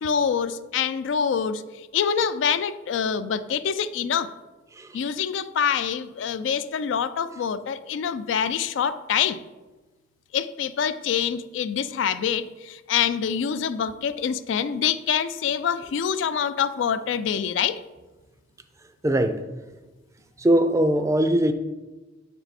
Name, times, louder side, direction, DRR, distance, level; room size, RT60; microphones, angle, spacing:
voice 1, 0.0-4.3 4.9-9.4 10.3-17.8, left 7 dB, 70° left, 12 dB, 0.3 m, -25 dB
voice 2, 19.0-19.4 20.4-21.5, right 1 dB, 15° right, 9 dB, 0.4 m, -21 dB
7.2 x 4.5 x 4.1 m, 1.2 s
head